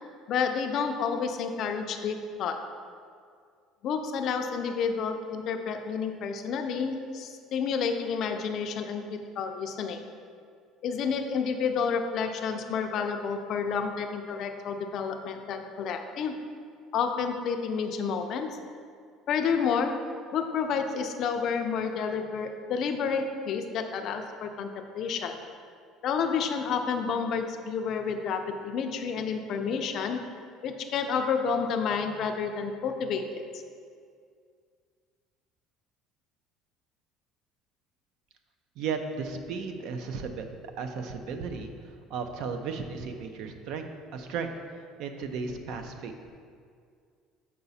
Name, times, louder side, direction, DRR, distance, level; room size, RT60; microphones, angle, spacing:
voice 1, 0.3-2.6 3.8-10.0 10.8-16.3 16.9-18.5 19.3-19.9 20.3-25.4 26.0-30.2 30.6-33.4, left 6 dB, 45° left, 5 dB, 0.4 m, -30 dB
voice 2, 38.8-40.5 40.8-44.5 45.0-46.3, right 5 dB, 55° right, 7 dB, 0.5 m, -35 dB
6.8 x 4.8 x 4.1 m, 2.2 s
cardioid pair, 170°, 0 cm